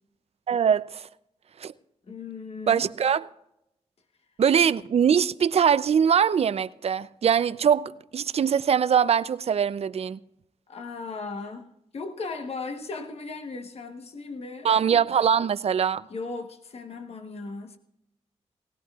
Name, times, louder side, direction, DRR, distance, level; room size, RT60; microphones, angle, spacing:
voice 1, 0.5-1.1 1.6-1.7 2.7-3.2 4.4-10.2 14.6-16.0, right 8 dB, 60° right, 0.5 m, -22 dB
voice 2, 2.1-2.9 10.7-14.7 16.1-17.8, left 3 dB, 60° left, 1.2 m, -37 dB
19.5 x 17.5 x 2.4 m
cardioid pair, 75°, 12 cm